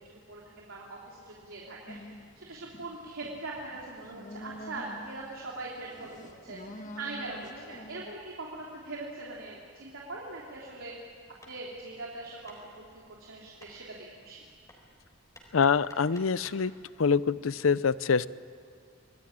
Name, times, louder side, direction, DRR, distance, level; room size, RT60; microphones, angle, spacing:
voice 1, 0.0-11.2 11.4-14.4, right 2 dB, 80° right, -4 dB, 3.3 m, -42 dB
sound 1, 1.9-8.1, left 1 dB, 35° left, 1.5 m, -47 dB
Hammer, 11.4-16.7, left 1 dB, 15° left, 4.3 m, -56 dB
voice 2, 15.5-16.7 17.0-18.3, left 5 dB, 80° left, 17 dB, 0.6 m, -25 dB
26.5 x 19.5 x 9.9 m, 2.3 s
head